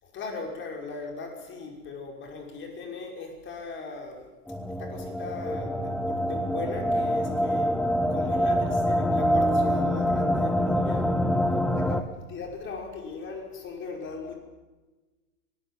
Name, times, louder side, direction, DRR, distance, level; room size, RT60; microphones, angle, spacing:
voice 1, 0.0-4.3 4.7-7.8 8.1-11.1 11.5-14.4, left 4 dB, 25° left, 2 dB, 5.8 m, -38 dB
sound 1, 4.5-12.0, equal, ahead, 0.9 m, -25 dB
23.0 x 20.5 x 7.7 m, 1.2 s
hypercardioid pair, 130°, 45 cm